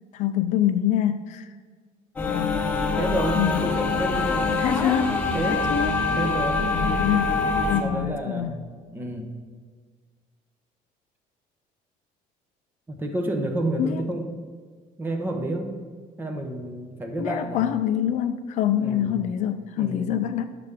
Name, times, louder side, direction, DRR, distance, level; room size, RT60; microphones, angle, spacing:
voice 1, 0.1-1.5 2.3-2.7 3.4-3.7 4.6-5.9 6.7-8.6 13.8-14.0 17.2-20.5, left 10 dB, 50° left, 9 dB, 0.4 m, -26 dB
sound 1, 2.2-7.8, left 3 dB, 10° left, 1.0 m, -24 dB
voice 2, 3.0-4.7 5.3-5.7 6.2-6.6 7.8-8.6 8.9-9.3 12.9-14.3 15.0-15.8 16.2-17.7 18.8-19.2 19.8-20.2, right 1 dB, 15° right, 4 dB, 0.7 m, -29 dB
10.5 x 6.7 x 3.6 m, 1.5 s
cardioid pair, 175°, 15 cm